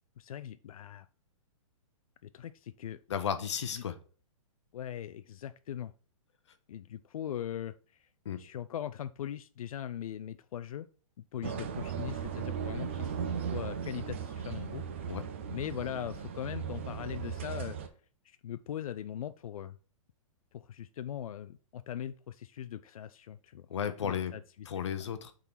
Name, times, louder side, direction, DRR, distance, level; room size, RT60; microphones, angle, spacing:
voice 1, 0.2-1.1 2.2-3.0 3.7-3.8 4.7-5.9 6.7-8.1 8.4-10.9 11.3-15.1 15.5-17.8 18.2-19.8 20.5-24.7 25.0-25.1, left 10 dB, 90° left, 12 dB, 0.4 m, -40 dB
voice 2, 3.1-4.0 8.2-8.4 15.1-15.2 23.7-24.3 24.7-25.3, left 8 dB, 55° left, 10 dB, 0.8 m, -33 dB
sound 1, 11.4-17.9, right 7 dB, 20° right, 0.4 m, -37 dB
6.9 x 3.9 x 4.5 m, 0.40 s
hypercardioid pair, 180°, 18 cm